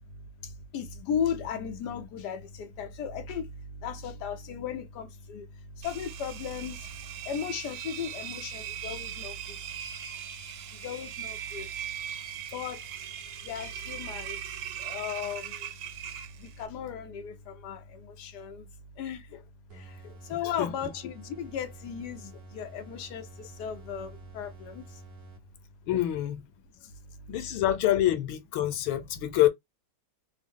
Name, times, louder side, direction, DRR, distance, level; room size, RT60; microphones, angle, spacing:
voice 1, 0.4-3.5 3.8-5.5 5.8-6.9 7.2-9.6 10.8-11.7 12.5-13.1 13.4-15.7 16.4-18.7 19.0-19.3 19.7-24.9 26.8-26.9, left 7 dB, 65° left, 1.1 m, -36 dB
Engine, 5.8-16.7, right 9 dB, 80° right, 1.4 m, -40 dB
sound 1, 19.7-25.8, right 3 dB, 50° right, 1.0 m, -49 dB
voice 2, 20.4-20.9 25.9-26.4 27.3-29.5, left 13 dB, 90° left, 1.5 m, -26 dB
3.5 x 2.0 x 3.5 m
omnidirectional pair, 2.2 m